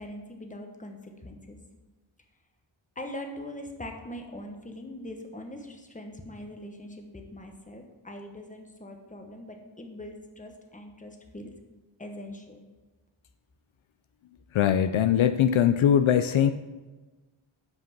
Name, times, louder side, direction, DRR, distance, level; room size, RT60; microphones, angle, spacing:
voice 1, 0.0-1.6 2.9-11.5 12.0-12.6, left 1 dB, 15° left, 3 dB, 1.2 m, -42 dB
voice 2, 14.5-16.5, left 9 dB, 70° left, 10 dB, 0.5 m, -21 dB
8.4 x 5.2 x 5.9 m, 1.3 s
wide cardioid pair, 95°, 49 cm